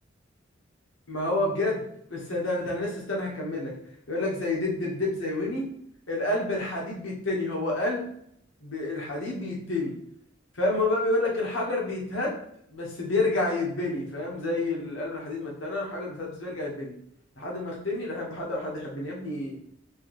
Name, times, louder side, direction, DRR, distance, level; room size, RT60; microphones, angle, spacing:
voice 1, 1.1-1.8 2.1-3.8 4.1-5.7 6.1-8.0 8.6-9.9 10.6-12.4 12.7-16.9 17.4-19.6, left 2 dB, 80° left, -2 dB, 1.2 m, -29 dB
4.6 x 2.9 x 3.1 m, 0.70 s
head